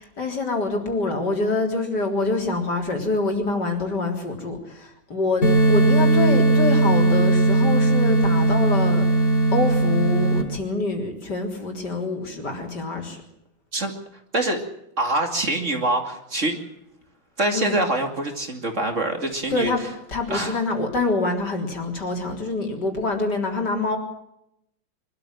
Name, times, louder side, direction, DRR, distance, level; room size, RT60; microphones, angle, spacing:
voice 1, 0.0-9.3 9.5-13.2 17.5-17.8 19.5-24.0, left 3 dB, 60° left, 2 dB, 4.4 m, -26 dB
sound 1, 5.4-10.4, right 1 dB, 35° left, 4.2 m, -18 dB
voice 2, 15.0-16.6 17.4-19.9 20.3-20.6, right 1 dB, 40° right, 4 dB, 2.8 m, -25 dB
24.5 x 13.5 x 9.1 m, 0.81 s
omnidirectional pair, 2.1 m